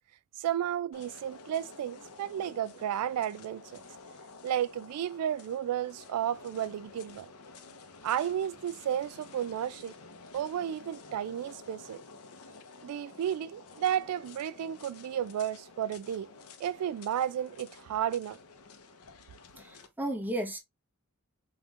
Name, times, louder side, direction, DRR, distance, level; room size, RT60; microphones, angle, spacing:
voice 1, 0.4-3.8 4.4-7.3 8.0-9.9 10.3-12.0 12.8-16.3 16.6-18.4, right 10 dB, 80° right, 0.3 m, -33 dB
sound 1, 0.9-19.9, left 4 dB, 75° left, 0.8 m, -51 dB
voice 2, 19.6-20.6, right 1 dB, 10° right, 1.0 m, -34 dB
5.5 x 3.0 x 2.4 m
head